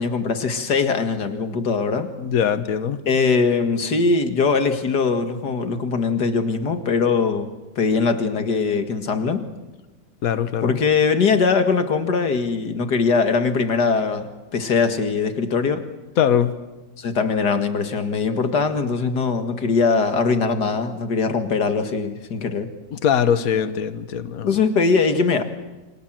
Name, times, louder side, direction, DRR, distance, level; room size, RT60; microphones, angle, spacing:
voice 1, 0.0-2.1 3.1-7.5 7.8-9.4 10.6-15.9 17.0-22.7 24.4-25.4, left 4 dB, 80° left, 2.5 m, -21 dB
voice 2, 2.2-3.0 10.2-10.8 16.2-16.5 22.9-24.5, left 8 dB, 60° left, 1.6 m, -21 dB
29.0 x 25.0 x 7.7 m
omnidirectional pair, 1.7 m